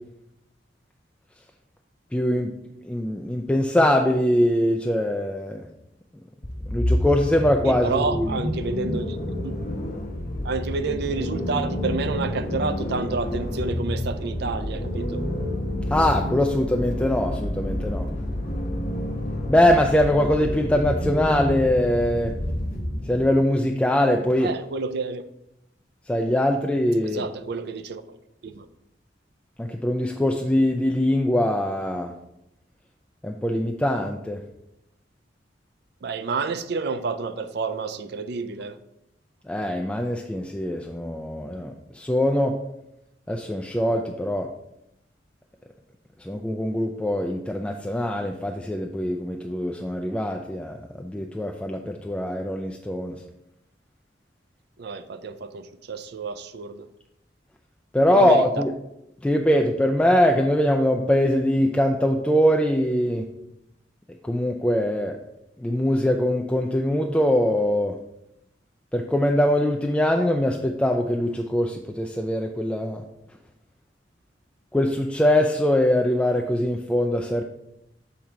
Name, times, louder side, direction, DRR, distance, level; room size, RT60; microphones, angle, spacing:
voice 1, 2.1-2.5 2.8-5.6 6.7-8.4 15.9-18.1 19.5-22.4 23.0-24.5 26.1-27.2 29.6-32.1 33.2-34.4 39.5-42.6 43.3-44.5 46.2-53.2 57.9-58.7 59.2-63.3 64.2-65.2 65.6-68.0 68.9-73.0 74.7-77.4, left 1 dB, 5° left, 2 dB, 0.3 m, -22 dB
sound 1, 6.4-23.3, left 1 dB, 55° left, 1.0 m, -29 dB
voice 2, 7.6-9.2 9.4-9.5 10.4-15.2 24.4-25.2 27.0-28.2 28.4-28.7 36.0-38.8 54.8-56.9 58.1-58.6 59.5-59.6, right 4 dB, 65° right, 11 dB, 0.4 m, -29 dB
7.2 x 3.7 x 4.5 m, 0.84 s
head